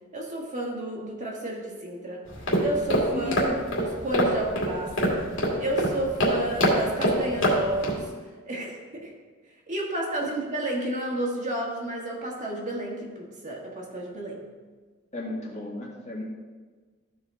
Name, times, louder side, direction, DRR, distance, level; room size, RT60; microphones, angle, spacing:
voice 1, 0.1-2.2 2.6-3.3 3.8-5.2 5.6-8.1 8.4-9.1 9.7-14.4, right 1 dB, 35° right, -2 dB, 1.7 m, -31 dB
sound 1, 2.3-8.0, equal, 60° left, 2.3 m, -25 dB
voice 2, 3.1-3.6 15.1-16.2, left 1 dB, 30° left, -3 dB, 1.8 m, -34 dB
14.0 x 5.0 x 3.7 m, 1.4 s
head